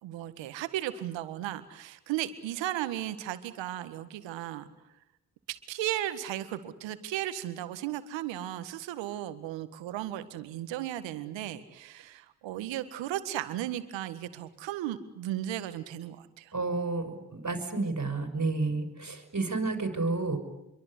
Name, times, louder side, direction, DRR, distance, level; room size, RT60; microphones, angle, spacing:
voice 1, 0.0-4.7 5.5-16.5, right 13 dB, 80° right, 12 dB, 1.8 m, -35 dB
voice 2, 16.5-20.4, right 3 dB, 40° right, 6 dB, 6.0 m, -30 dB
27.5 x 23.0 x 8.4 m, 0.90 s
hypercardioid pair, 40°, 44 cm